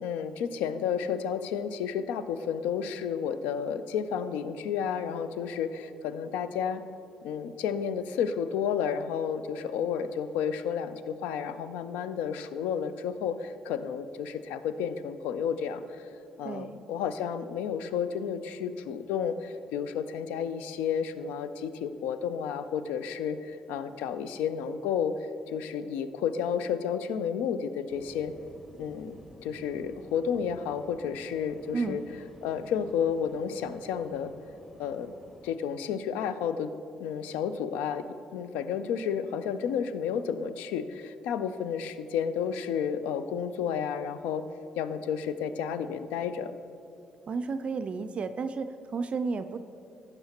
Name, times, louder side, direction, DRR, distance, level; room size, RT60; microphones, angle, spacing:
voice 1, 0.0-6.8 7.2-16.1 16.4-25.1 25.5-28.3 28.8-29.2 29.4-32.0 32.4-34.3 34.8-35.1 35.4-36.7 37.0-38.1 38.3-44.5 44.8-46.5, left 7 dB, 80° left, 12 dB, 0.3 m, -31 dB
voice 2, 16.4-16.8 31.7-32.0 47.3-49.6, right 4 dB, 50° right, 10 dB, 0.3 m, -32 dB
sound 1, 27.9-35.5, equal, 15° left, 1.8 m, -53 dB
12.0 x 7.7 x 2.9 m, 2.7 s
hypercardioid pair, 55°, 3 cm